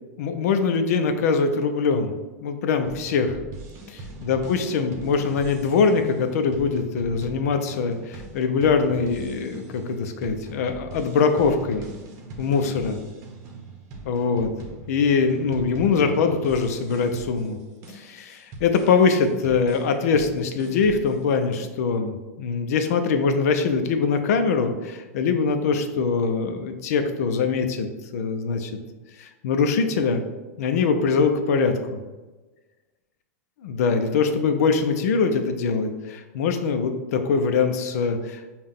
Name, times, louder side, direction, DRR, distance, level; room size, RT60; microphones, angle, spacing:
voice 1, 0.2-2.1 2.4-3.4 3.9-11.9 12.4-13.0 14.1-14.5 14.9-17.6 17.9-28.7 29.2-30.3 30.6-32.0 33.6-38.5, left 5 dB, 70° left, 7 dB, 0.6 m, -23 dB
sound 1, 2.8-21.6, right 3 dB, 45° right, 0.9 m, -41 dB
5.4 x 2.4 x 3.5 m, 1.2 s
hypercardioid pair, 115°, 9 cm